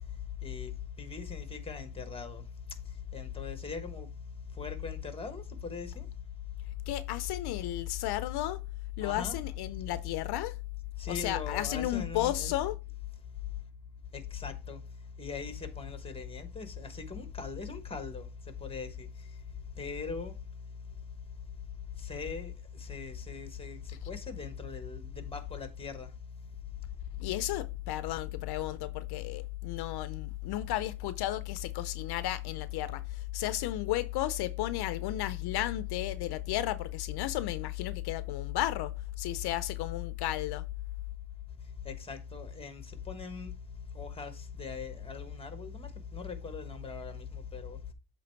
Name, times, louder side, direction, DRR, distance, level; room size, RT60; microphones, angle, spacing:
voice 1, 0.4-0.7 1.0-2.5 3.1-4.1 4.5-6.1 9.0-9.4 9.9-10.0 11.0-12.6 14.1-14.8 15.2-19.3 19.7-20.4 22.0-26.1 41.8-43.5 43.9-47.8, left 4 dB, 15° left, 1.2 m, -41 dB
voice 2, 6.9-8.6 9.0-10.6 11.1-12.8 23.9-24.0 27.2-40.6, left 14 dB, 70° left, 0.6 m, -33 dB
7.7 x 3.2 x 4.5 m
cardioid pair, 95°, 40 cm